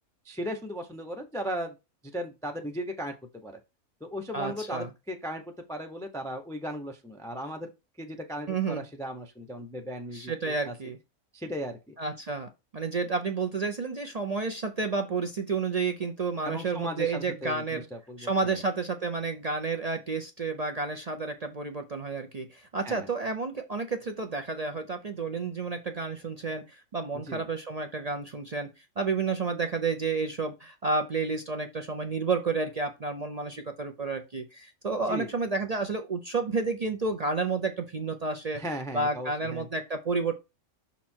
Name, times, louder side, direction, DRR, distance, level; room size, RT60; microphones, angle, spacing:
voice 1, 0.2-1.8 2.1-3.5 4.0-7.7 8.0-10.7 11.3-11.9 16.4-18.6 22.8-23.1 27.2-27.4 35.1-35.3 38.5-39.7, equal, 5° left, 3 dB, 0.5 m, -37 dB
voice 2, 4.3-4.9 8.5-8.8 10.1-11.0 12.0-17.8 18.2-28.7 29.0-38.6 38.9-40.3, right 4 dB, 50° right, 6 dB, 0.4 m, -31 dB
6.2 x 4.1 x 4.4 m, 0.25 s
omnidirectional pair, 1.5 m